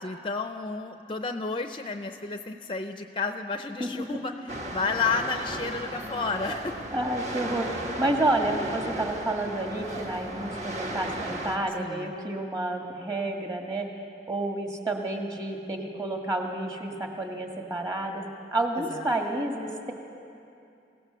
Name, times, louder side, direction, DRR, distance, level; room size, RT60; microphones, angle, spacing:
voice 1, 0.0-4.3 4.7-6.8 11.8-12.1 18.9-19.1, left 4 dB, 30° left, 7 dB, 0.5 m, -31 dB
voice 2, 3.8-4.2 6.9-13.9 14.3-18.2 18.5-19.9, right 2 dB, 20° right, 2 dB, 1.9 m, -30 dB
sound 1, 4.5-11.6, right 1 dB, 40° right, 1.7 m, -35 dB
24.0 x 17.0 x 6.9 m, 2.6 s
head